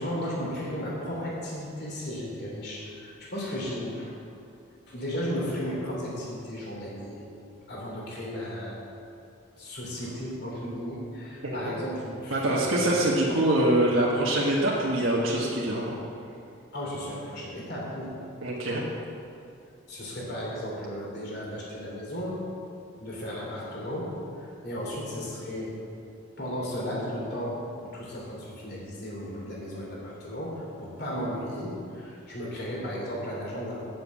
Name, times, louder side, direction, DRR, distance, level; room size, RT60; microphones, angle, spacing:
voice 1, 0.0-4.2 4.9-7.2 7.7-8.8 9.6-12.8 16.7-18.1 19.9-22.4 23.0-25.7 26.4-33.8, equal, 50° left, -4 dB, 3.0 m, -35 dB
voice 2, 11.4-11.7 12.3-16.0 18.4-18.8, right 1 dB, 70° right, -5 dB, 1.4 m, -24 dB
7.8 x 7.7 x 8.4 m, 2.5 s
head